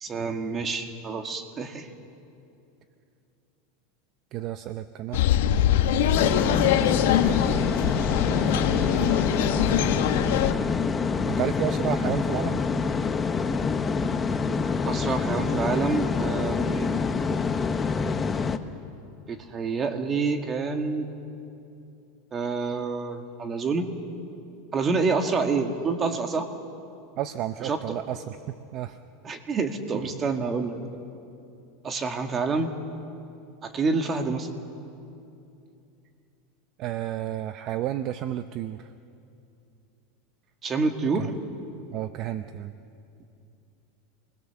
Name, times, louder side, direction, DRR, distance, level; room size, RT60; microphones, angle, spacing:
voice 1, 0.0-1.9 14.9-16.9 19.3-21.1 22.3-23.9 24.7-26.5 27.6-27.8 29.2-30.8 31.8-32.7 33.6-34.5 40.6-41.3, right 4 dB, 25° right, 6 dB, 1.9 m, -27 dB
voice 2, 4.3-5.3 5.9-6.7 11.3-12.6 27.2-29.0 36.8-38.9 41.2-41.3 41.9-42.7, right 12 dB, 45° right, 11 dB, 0.6 m, -32 dB
sound 1, 5.1-10.5, left 10 dB, 80° left, 1.3 m, -23 dB
sound 2, 6.1-18.6, left 5 dB, 15° left, 0.9 m, -26 dB
28.0 x 21.0 x 7.0 m, 2.7 s
supercardioid pair, 145°, 0 cm